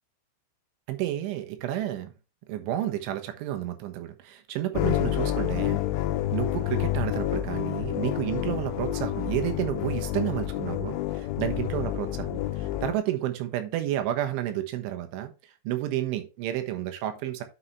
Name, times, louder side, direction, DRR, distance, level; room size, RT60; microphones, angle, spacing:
voice 1, 0.9-2.1 2.5-5.8 6.3-15.3 15.7-17.4, right 13 dB, 80° right, 7 dB, 3.6 m, -31 dB
sound 1, 4.7-12.9, left 13 dB, 85° left, 3.2 m, -29 dB
10.0 x 6.8 x 3.1 m, 0.30 s
omnidirectional pair, 5.7 m